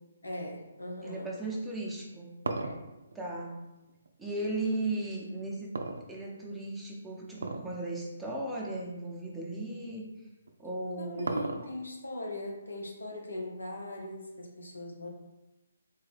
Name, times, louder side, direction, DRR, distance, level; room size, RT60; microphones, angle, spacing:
voice 1, 0.2-1.3 2.6-2.7 11.0-15.1, left 1 dB, 85° left, 0 dB, 0.8 m, -39 dB
voice 2, 1.0-2.3 3.1-3.7 4.2-5.7 6.1-10.1 10.6-11.3, right 2 dB, 5° right, -5 dB, 0.7 m, -36 dB
sound 1, 1.9-4.4 5.7-6.6 7.3-7.8 8.1-8.2 9.0-9.1 10.5-12.0, right 3 dB, 75° right, 0.4 m, -36 dB
3.8 x 2.1 x 3.3 m, 1.0 s
figure-of-eight pair, 145°, 0 cm